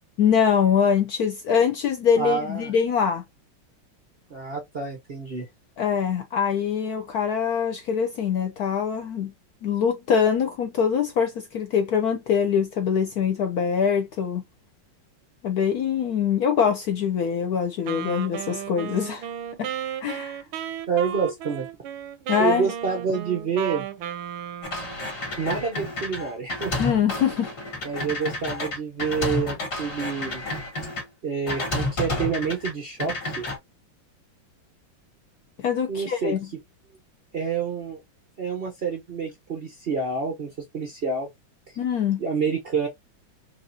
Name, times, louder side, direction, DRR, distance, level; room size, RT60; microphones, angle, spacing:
voice 1, 0.2-3.2 5.8-9.3 9.6-14.4 15.4-19.3 19.6-19.7 20.0-20.4 22.3-22.7 26.8-27.5 35.6-36.5 41.8-42.2, left 7 dB, 70° left, 0.9 m, -23 dB
voice 2, 2.2-2.7 4.3-5.5 20.9-21.7 22.4-23.8 25.4-26.7 27.8-30.4 31.2-33.4 35.9-36.3 37.3-38.0 38.4-41.3 42.2-42.9, right 5 dB, 65° right, 0.5 m, -28 dB
Wind instrument woodwind instrument, 17.9-25.0, right 10 dB, 85° right, 1.5 m, -34 dB
sound 1, 24.6-31.0 31.5-32.7 33.0-33.6, left 2 dB, 50° left, 2.1 m, -30 dB
4.7 x 2.6 x 2.6 m
omnidirectional pair, 2.2 m